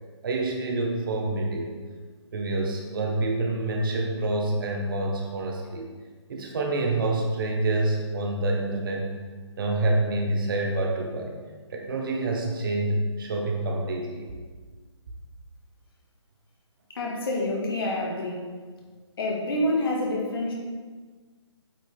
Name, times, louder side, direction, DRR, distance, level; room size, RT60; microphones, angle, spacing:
voice 1, 0.2-1.7 2.3-5.9 6.3-9.1 9.6-11.3 11.7-14.3, right 2 dB, 45° right, 1 dB, 1.2 m, -27 dB
voice 2, 16.9-18.5 19.2-20.5, left 1 dB, 50° left, -2 dB, 1.8 m, -27 dB
8.3 x 5.2 x 3.5 m, 1.4 s
figure-of-eight pair, 150°, 15 cm